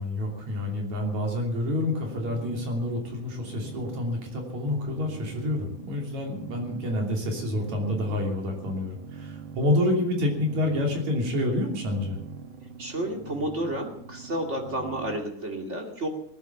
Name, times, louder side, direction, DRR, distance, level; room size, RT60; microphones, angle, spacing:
voice 1, 0.0-12.2, left 1 dB, 60° right, 1 dB, 4.3 m, -28 dB
sound 1, 1.9-15.2, right 5 dB, 80° right, 2.7 m, -43 dB
voice 2, 12.8-16.1, right 1 dB, 25° right, 2 dB, 2.3 m, -31 dB
19.0 x 10.5 x 7.1 m, 0.64 s
omnidirectional pair, 3.6 m